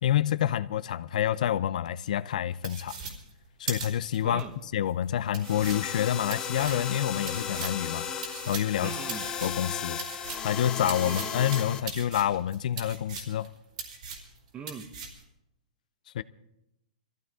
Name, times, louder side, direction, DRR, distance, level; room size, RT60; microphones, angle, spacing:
voice 1, 0.0-3.0 3.6-4.4 4.7-9.0 9.4-13.5 16.1-16.2, left 10 dB, 65° left, 0.5 m, -28 dB
sound 1, 2.6-4.4 4.9-5.0 5.3-10.5 10.9-13.5 13.8-14.4 14.7-15.2, right 5 dB, 65° right, 3.5 m, -39 dB
voice 2, 4.2-4.5 8.8-9.3 11.0-11.2 14.5-14.9, right 7 dB, 20° right, 1.1 m, -39 dB
Epic Future Bass Chords, 5.4-11.8, left 7 dB, 20° left, 1.5 m, -35 dB
21.5 x 14.5 x 3.8 m
hypercardioid pair, 135°, 4 cm